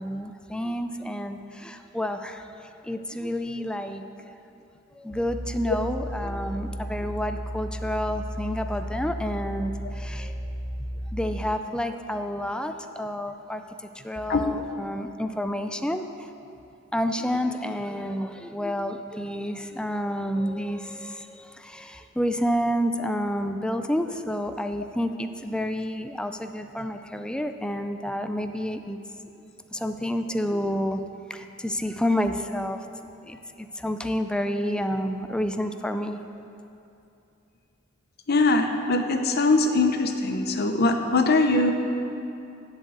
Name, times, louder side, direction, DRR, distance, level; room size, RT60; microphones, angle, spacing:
voice 1, 0.0-2.5 2.8-4.0 5.0-10.4 11.1-13.6 14.0-16.3 16.9-29.0 29.7-31.0 31.3-32.8 33.2-36.2, equal, 5° left, 7 dB, 0.4 m, -29 dB
sound 1, 5.1-11.4, equal, 30° left, 2.2 m, -34 dB
voice 2, 38.3-41.7, left 2 dB, 55° left, 6 dB, 0.8 m, -22 dB
8.0 x 7.2 x 7.8 m, 2.7 s
head